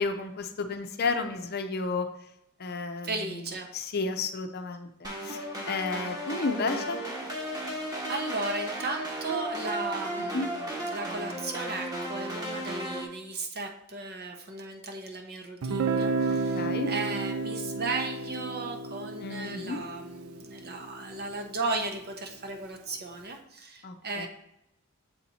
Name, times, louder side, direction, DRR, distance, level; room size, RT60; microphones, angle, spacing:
voice 1, 0.0-2.1 2.6-3.1 3.7-4.9 5.2-7.1 10.3-10.5 16.5-16.9 19.2-19.8 23.8-24.3, left 4 dB, 50° left, 7 dB, 0.6 m, -32 dB
voice 2, 3.0-3.7 7.5-24.3, right 3 dB, 50° right, 4 dB, 0.9 m, -36 dB
sound 1, 5.0-13.0, right 1 dB, 20° right, 1.1 m, -35 dB
Guitar, 15.6-21.4, right 4 dB, 85° right, 0.4 m, -32 dB
7.1 x 4.2 x 4.2 m, 0.81 s
head